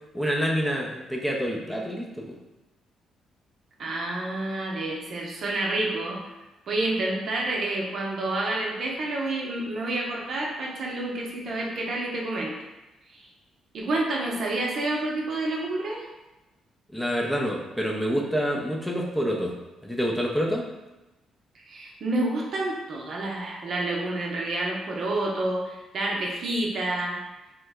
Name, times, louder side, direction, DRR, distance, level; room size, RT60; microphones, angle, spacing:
voice 1, 0.1-2.4 16.9-19.6 19.8-20.7, equal, 5° left, -1 dB, 0.5 m, -27 dB
voice 2, 3.8-6.2 6.7-12.5 13.1-13.3 13.7-16.0 21.7-27.2, right 2 dB, 55° right, -2 dB, 0.6 m, -29 dB
3.0 x 2.1 x 3.5 m, 1.0 s
cardioid pair, 90°, 0 cm